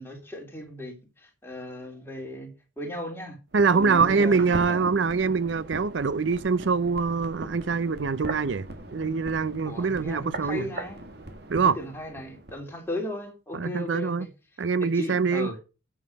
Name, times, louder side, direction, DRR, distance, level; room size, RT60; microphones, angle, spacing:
voice 1, 0.0-3.4 3.7-4.4 4.7-4.8 9.7-11.0 11.7-14.3 14.8-15.6, left 1 dB, 10° left, 3.0 m, -36 dB
sound 1, 3.5-12.6 12.9-13.0, right 2 dB, 60° right, 2.1 m, -39 dB
voice 2, 3.5-10.7 11.5-11.8 13.5-14.3 14.6-15.5, right 5 dB, 75° right, 0.5 m, -24 dB
9.4 x 7.3 x 5.2 m
head